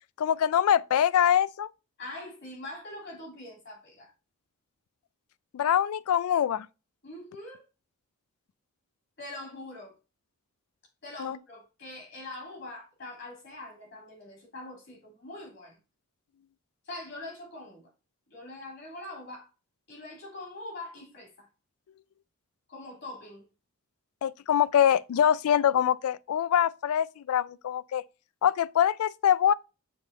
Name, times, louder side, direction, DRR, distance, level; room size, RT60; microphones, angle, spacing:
voice 1, 0.2-1.7 5.5-6.7 11.2-11.4 24.2-28.0 28.4-29.5, left 9 dB, 80° left, 0.3 m, -24 dB
voice 2, 2.0-4.1 7.0-7.6 9.2-9.9 11.0-15.8 16.8-17.9 18.3-19.5 19.9-21.5 22.7-23.4, left 2 dB, 55° left, 2.9 m, -43 dB
7.0 x 3.6 x 4.0 m
head